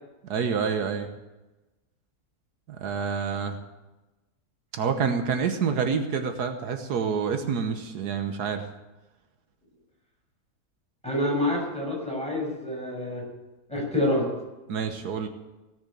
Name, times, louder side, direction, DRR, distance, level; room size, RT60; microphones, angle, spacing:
voice 1, 0.2-1.1 2.7-3.6 4.7-8.6 14.7-15.3, right 6 dB, 80° right, 7 dB, 1.6 m, -27 dB
voice 2, 11.0-13.2 13.7-14.3, left 1 dB, 5° left, -3 dB, 6.6 m, -27 dB
17.5 x 7.2 x 8.6 m, 1.1 s
omnidirectional pair, 1.7 m